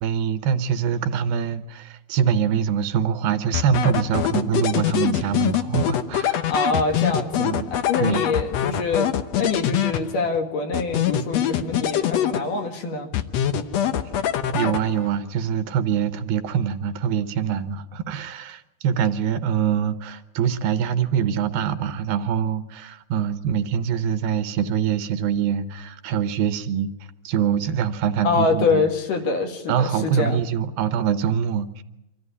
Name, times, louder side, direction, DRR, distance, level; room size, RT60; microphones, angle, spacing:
voice 1, 0.0-6.5 7.4-7.7 8.0-8.2 14.5-26.9 27.2-28.8 29.7-31.8, right 8 dB, 75° right, 11 dB, 2.6 m, -24 dB
sound 1, 3.5-10.4 10.7-12.8 13.1-15.2, left 10 dB, 85° left, 1.4 m, -24 dB
voice 2, 6.5-9.1 9.3-13.1 28.2-30.4, left 4 dB, 60° left, 4 dB, 3.2 m, -25 dB
25.5 x 14.5 x 9.7 m, 0.91 s
omnidirectional pair, 4.4 m